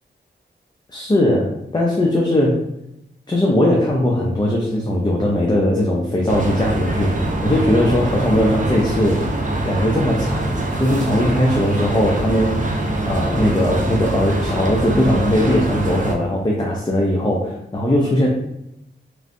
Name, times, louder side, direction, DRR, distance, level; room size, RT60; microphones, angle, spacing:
voice 1, 0.9-2.7 3.3-9.3 9.6-10.5 10.8-12.6 13.1-18.3, left 1 dB, 20° left, -2 dB, 0.5 m, -19 dB
sound 1, 6.3-16.1, right 2 dB, 40° right, 0.5 m, -23 dB
3.1 x 2.5 x 2.5 m, 0.84 s
wide cardioid pair, 85°, 20 cm